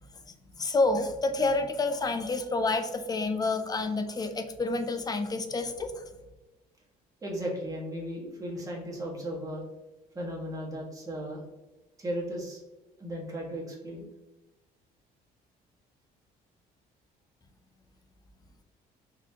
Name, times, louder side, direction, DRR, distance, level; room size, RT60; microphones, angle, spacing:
voice 1, 0.6-6.0, left 3 dB, 25° left, 7 dB, 0.5 m, -28 dB
voice 2, 7.2-9.6 10.1-11.4 12.0-12.6 13.0-14.1, equal, 20° right, -3 dB, 1.4 m, -36 dB
4.1 x 2.8 x 2.8 m, 1.1 s
cardioid pair, 110°, 17 cm